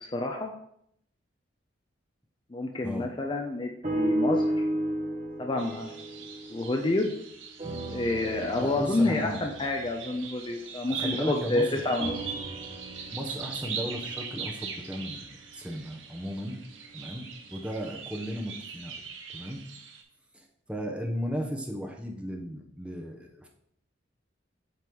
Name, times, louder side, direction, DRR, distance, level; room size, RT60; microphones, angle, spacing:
voice 1, 0.0-0.5 2.5-4.7 5.4-5.9 6.5-7.1 7.9-12.3, left 2 dB, 25° left, 3 dB, 0.5 m, -29 dB
sound 1, 3.8-7.2 7.6-11.3 12.0-16.2 16.8-16.9, right 1 dB, 35° right, 1.1 m, -34 dB
sound 2, 5.6-20.0, right 6 dB, 85° right, 0.9 m, -41 dB
voice 2, 8.6-9.4 10.9-11.7 13.1-15.2 15.5-16.6 16.9-17.3 17.5-19.0 19.3-19.6 20.3-23.5, equal, 5° right, 1 dB, 0.8 m, -35 dB
7.8 x 3.1 x 5.3 m, 0.72 s
head